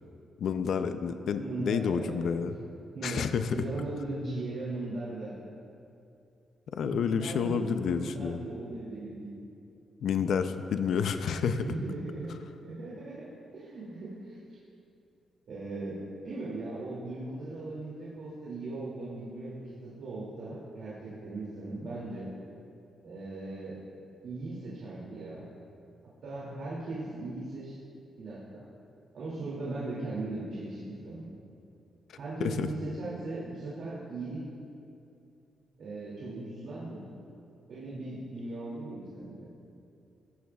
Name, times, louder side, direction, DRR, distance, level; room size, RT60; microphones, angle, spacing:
voice 1, 0.4-2.6 3.0-3.6 6.7-8.4 10.0-11.6 32.4-32.7, left 7 dB, 65° left, 9 dB, 0.5 m, -29 dB
voice 2, 1.4-2.5 2.9-5.3 6.8-9.3 11.3-12.3 12.6-14.6 15.5-22.3 23.0-23.8 24.2-25.4 26.2-27.7 28.2-28.6 29.1-31.3 32.2-34.4 35.8-37.0 37.7-39.5, right 2 dB, 60° right, -8 dB, 2.5 m, -38 dB
16.5 x 13.5 x 2.3 m, 2.6 s
wide cardioid pair, 165°, 0 cm